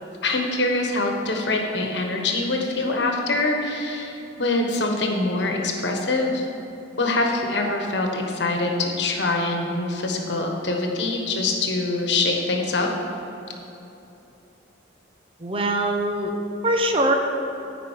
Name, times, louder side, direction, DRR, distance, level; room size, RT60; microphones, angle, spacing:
voice 1, 0.2-6.5 7.0-12.9, left 2 dB, 65° left, 2 dB, 1.3 m, -24 dB
voice 2, 15.4-16.4 16.6-17.1, right 1 dB, 30° right, 3 dB, 0.8 m, -22 dB
10.0 x 5.2 x 7.3 m, 3.0 s
head